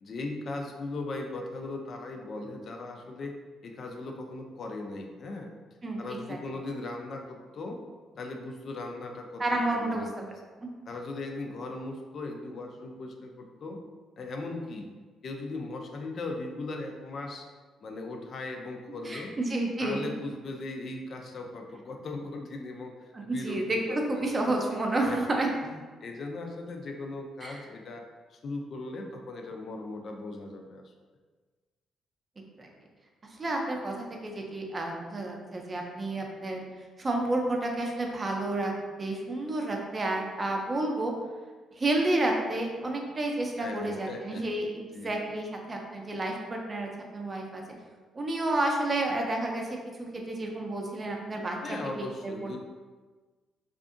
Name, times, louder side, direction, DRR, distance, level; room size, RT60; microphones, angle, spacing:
voice 1, 0.0-3.3 3.6-5.5 6.0-7.8 8.1-10.3 10.9-13.8 14.2-14.9 15.2-17.5 17.8-19.4 19.8-24.5 25.0-28.0 28.3-30.9 43.6-44.4 44.9-45.1 51.6-52.6, left 2 dB, 55° left, 3 dB, 0.4 m, -38 dB
voice 2, 5.8-6.4 9.4-10.2 10.5-10.7 19.0-20.1 23.1-25.5 27.4-27.6 32.6-32.7 33.4-36.6 37.0-38.7 39.0-41.1 41.8-47.6 48.1-51.8 52.2-52.6, right 2 dB, 30° right, 1 dB, 0.5 m, -30 dB
2.6 x 2.4 x 2.5 m, 1.4 s
cardioid pair, 90°, 0 cm